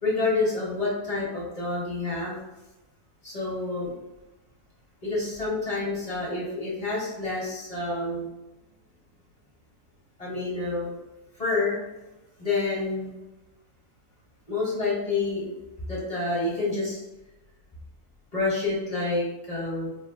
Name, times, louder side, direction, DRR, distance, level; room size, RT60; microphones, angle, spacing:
voice 1, 0.0-2.4 3.2-3.9 5.0-8.3 10.2-10.9 11.4-11.8 12.4-13.1 14.5-15.5 15.9-17.0 18.3-19.9, left 3 dB, 30° left, -6 dB, 0.9 m, -28 dB
4.4 x 2.1 x 2.3 m, 1.0 s
omnidirectional pair, 1.6 m